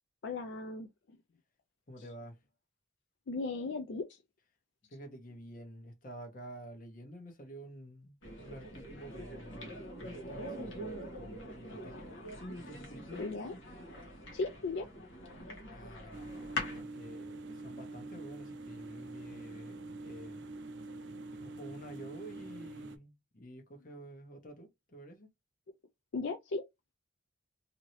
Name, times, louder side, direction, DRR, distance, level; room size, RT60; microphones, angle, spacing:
voice 1, 0.2-0.9 3.3-4.1 13.2-13.5 14.3-14.9 26.1-26.7, left 3 dB, 70° left, 0.4 m, -36 dB
voice 2, 1.9-2.4 4.9-12.2 12.5-13.3 15.7-16.3 16.7-20.4 21.4-25.3, right 1 dB, 45° left, 1.0 m, -50 dB
sound 1, 8.2-16.8, left 1 dB, 85° left, 1.1 m, -43 dB
sound 2, 16.1-23.0, right 2 dB, 70° right, 0.5 m, -45 dB
2.8 x 2.7 x 3.0 m
head